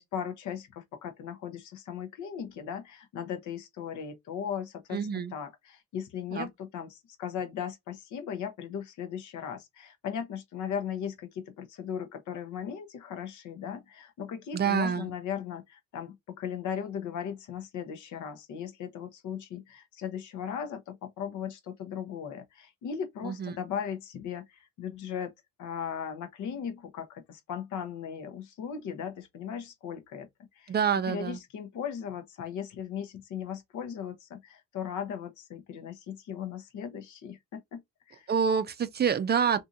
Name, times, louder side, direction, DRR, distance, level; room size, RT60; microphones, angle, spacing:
voice 1, 0.0-5.0 5.3-25.3 25.6-30.3 30.5-30.7 31.1-37.8 38.1-38.3, left 8 dB, 75° left, 0.7 m, -37 dB
voice 2, 4.9-5.3 6.3-6.5 14.5-15.1 23.2-23.6 30.7-31.4 38.3-39.6, right 7 dB, 35° right, 0.4 m, -27 dB
2.7 x 2.6 x 2.4 m
cardioid pair, 90°, 30 cm